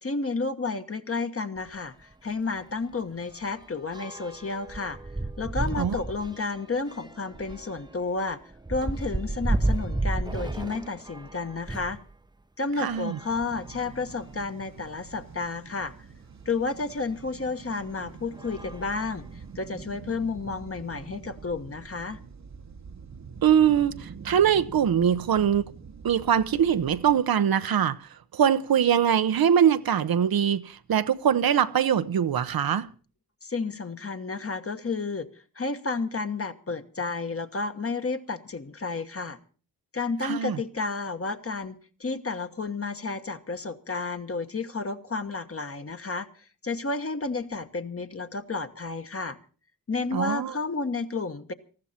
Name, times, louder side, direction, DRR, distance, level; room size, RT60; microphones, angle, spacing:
voice 1, 0.0-5.0 5.4-8.4 8.7-12.0 12.6-15.9 16.4-22.2 33.4-35.3 35.5-39.4 39.9-49.4 49.9-51.5, left 3 dB, 40° left, 1.3 m, -31 dB
sound 1, 1.6-1.7 2.1-2.3 2.6-12.0 12.8-14.1 14.8-14.9 15.1-15.2 16.9-17.0 17.7-18.0 18.3-19.6, right 2 dB, 10° right, 0.7 m, -33 dB
voice 2, 12.8-13.2 23.4-25.6 26.0-32.9 40.2-40.6 50.1-50.5, right 8 dB, 75° right, 0.8 m, -23 dB
sound 2, 13.3-27.2, right 6 dB, 50° right, 1.0 m, -45 dB
19.0 x 14.5 x 4.3 m
cardioid pair, 70°, 36 cm